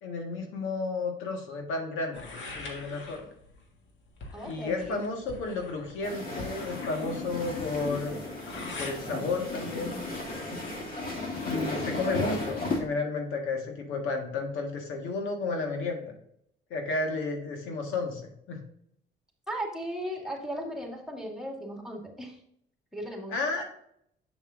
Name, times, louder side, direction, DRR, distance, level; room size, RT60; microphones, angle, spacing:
voice 1, 0.0-3.3 4.4-8.2 8.8-10.0 11.4-16.1 16.7-18.6 23.3-23.6, left 3 dB, 90° left, 2 dB, 1.6 m, -32 dB
sound 1, 2.1-9.0, left 2 dB, 70° left, 1.7 m, -44 dB
voice 2, 4.3-5.0 19.5-22.4 22.9-23.4, equal, ahead, 1 dB, 2.1 m, -36 dB
sound 2, 6.0-12.8, left 2 dB, 45° left, 2.5 m, -34 dB
7.0 x 7.0 x 2.6 m, 0.71 s
cardioid pair, 90°, 20 cm